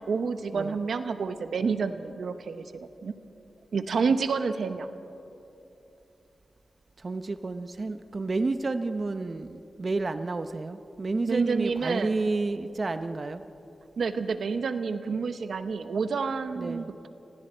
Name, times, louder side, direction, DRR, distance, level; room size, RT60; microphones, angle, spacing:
voice 1, 0.1-3.1 3.7-4.9 11.3-12.1 14.0-17.1, right 5 dB, 80° right, 10 dB, 0.9 m, -29 dB
voice 2, 7.0-13.4 16.6-16.9, right 3 dB, 45° right, 10 dB, 0.7 m, -30 dB
29.0 x 21.0 x 4.4 m, 2.9 s
wide cardioid pair, 85°, 0 cm